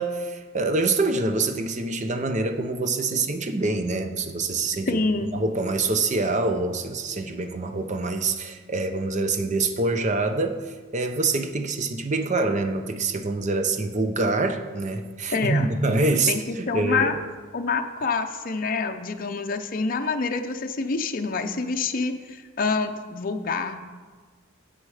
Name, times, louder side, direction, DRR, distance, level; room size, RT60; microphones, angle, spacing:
voice 1, 0.0-5.0 5.3-10.6 10.9-17.2, right 3 dB, 35° right, 8 dB, 0.7 m, -25 dB
voice 2, 4.9-5.3 15.3-15.7 16.1-17.1 17.5-23.8, left 4 dB, 45° left, 5 dB, 0.6 m, -27 dB
9.7 x 7.8 x 4.9 m, 1.5 s
head